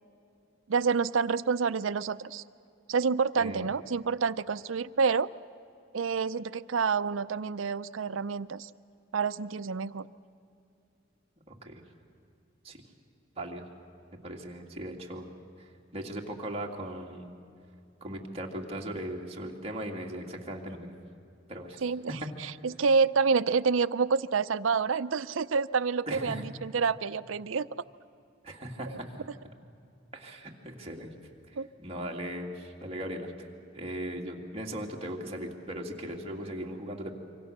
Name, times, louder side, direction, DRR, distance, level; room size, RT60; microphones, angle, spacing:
voice 1, 0.7-2.4 2.9-5.3 5.9-8.7 9.1-10.1 21.8-27.7 31.6-31.7, right 5 dB, 90° right, 16 dB, 0.6 m, -28 dB
voice 2, 14.2-15.3 15.9-17.3 18.0-20.9 21.5-21.8 26.1-26.4 28.4-29.0 30.1-31.1 31.8-33.3 33.7-37.1, right 1 dB, 30° right, 0 dB, 2.4 m, -38 dB
26.5 x 24.5 x 6.6 m, 2.6 s
head